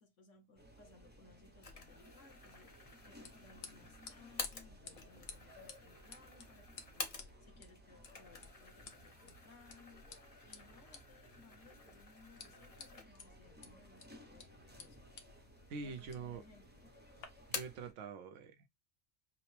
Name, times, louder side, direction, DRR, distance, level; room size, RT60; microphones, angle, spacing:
voice 1, 0.0-15.1 15.8-16.9, left 4 dB, 75° left, 1.5 m, -63 dB
sound 1, 0.6-17.9, equal, 10° right, 0.7 m, -60 dB
sound 2, 1.6-7.6 7.9-13.4 13.8-13.9 14.8-15.4 15.7-16.5 16.8-17.9, left 4 dB, 35° left, 0.8 m, -50 dB
sound 3, 2.4-17.3, left 5 dB, 55° left, 1.0 m, -57 dB
voice 2, 15.7-16.4 17.5-18.7, right 5 dB, 75° right, 1.0 m, -45 dB
5.7 x 2.1 x 3.2 m
omnidirectional pair, 1.3 m